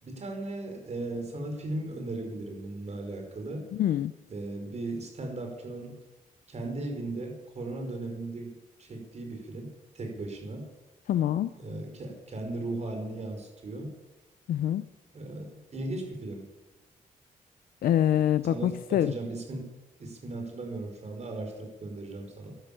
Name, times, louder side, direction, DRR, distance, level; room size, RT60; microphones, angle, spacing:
voice 1, 0.0-3.7 4.3-6.0 6.5-10.7 11.6-13.9 15.1-16.4 18.5-19.7 20.0-22.5, right 2 dB, 50° right, 3 dB, 5.3 m, -37 dB
voice 2, 3.7-4.1 11.1-11.5 14.5-14.9 17.8-19.1, left 11 dB, 85° left, 13 dB, 0.5 m, -25 dB
12.5 x 12.0 x 8.7 m, 1.1 s
cardioid pair, 90°, 15 cm